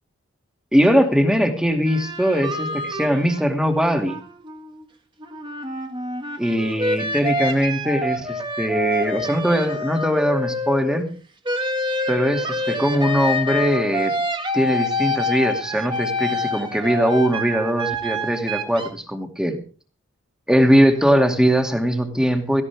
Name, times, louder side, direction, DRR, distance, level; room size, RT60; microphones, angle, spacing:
voice 1, 0.7-4.2 6.4-11.1 12.1-14.1 14.5-19.6 20.5-22.6, equal, 5° right, 5 dB, 2.3 m, -20 dB
sound 1, 1.9-4.8 5.2-11.0 11.5-18.9, left 1 dB, 20° right, 1.9 m, -27 dB
17.5 x 16.0 x 3.5 m, 0.38 s
head